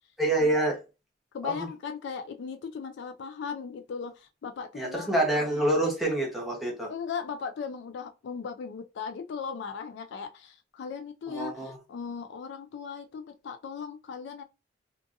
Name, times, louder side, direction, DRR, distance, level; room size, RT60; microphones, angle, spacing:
voice 1, 0.2-0.8 1.4-1.7 4.7-6.9 11.3-11.8, right 1 dB, ahead, 1.0 m, -27 dB
voice 2, 1.3-5.5 6.9-14.4, left 6 dB, 65° left, 0.4 m, -37 dB
2.6 x 2.5 x 2.5 m
head